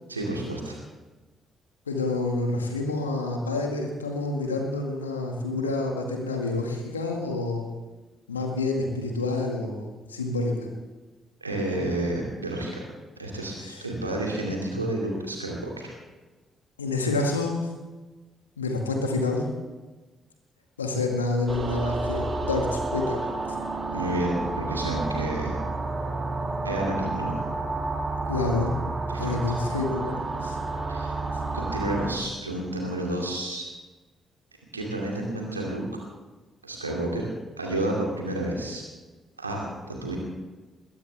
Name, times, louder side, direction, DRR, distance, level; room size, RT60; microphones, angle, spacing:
voice 1, 0.1-0.8 11.4-12.9 13.2-15.9 23.9-25.6 26.6-27.4 29.1-29.5 30.9-31.1 31.5-33.7 34.7-35.8 36.6-37.3 37.6-38.8 39.4-40.2, right 1 dB, 90° right, -1 dB, 2.6 m, -30 dB
voice 2, 1.9-7.7 8.3-10.7 13.6-13.8 16.8-17.7 18.6-19.5 20.8-23.3 28.3-28.8 29.2-30.6, left 2 dB, 85° left, 2 dB, 1.9 m, -28 dB
sound 1, 21.5-32.2, right 3 dB, 35° right, 2.2 m, -30 dB
21.5 x 17.0 x 3.5 m, 1.2 s
figure-of-eight pair, 40°, 0 cm